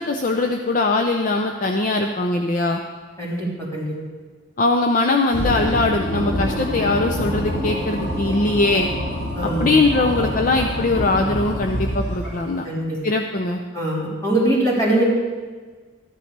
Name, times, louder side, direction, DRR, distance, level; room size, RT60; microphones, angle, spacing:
voice 1, 0.0-2.8 4.6-8.9 9.6-12.6 13.0-13.6, left 2 dB, 45° left, 3 dB, 0.5 m, -21 dB
voice 2, 3.2-3.9 9.3-9.7 12.6-13.0 13.7-15.0, right 1 dB, 15° left, -6 dB, 3.3 m, -22 dB
sound 1, 5.3-12.6, equal, 65° left, 3.2 m, -26 dB
14.0 x 11.0 x 3.3 m, 1.4 s
head